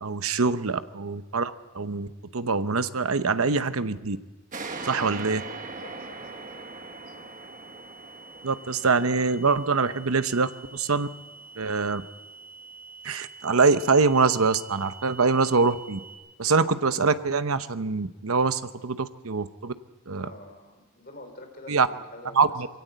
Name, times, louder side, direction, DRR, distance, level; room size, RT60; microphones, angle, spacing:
voice 1, 0.0-4.2 4.8-5.4 8.4-11.1 11.6-12.0 13.0-16.0 16.4-19.7 20.1-20.3 21.7-21.9 22.4-22.7, right 4 dB, 90° right, 12 dB, 0.9 m, -24 dB
sound 1, 4.5-11.7, right 3 dB, 35° right, 1.4 m, -41 dB
sound 2, 4.7-16.1, right 4 dB, 15° right, 6.1 m, -47 dB
voice 2, 5.8-6.7 7.0-7.3 20.1-22.6, left 1 dB, 45° left, 5 dB, 3.4 m, -47 dB
23.0 x 17.0 x 8.1 m, 1.2 s
head